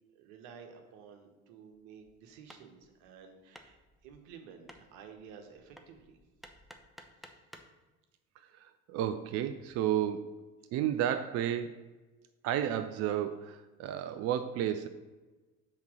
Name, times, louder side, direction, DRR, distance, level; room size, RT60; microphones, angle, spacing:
voice 1, 0.1-3.8 4.0-6.2 7.2-7.4, right 6 dB, 60° right, 5 dB, 1.1 m, -52 dB
Hammer, 2.0-7.8, equal, ahead, 0.7 m, -56 dB
voice 2, 8.4-10.3 10.7-11.8 12.4-14.9, right 10 dB, 40° right, 10 dB, 0.4 m, -32 dB
5.8 x 4.2 x 6.3 m, 1.2 s
figure-of-eight pair, 55°, 42 cm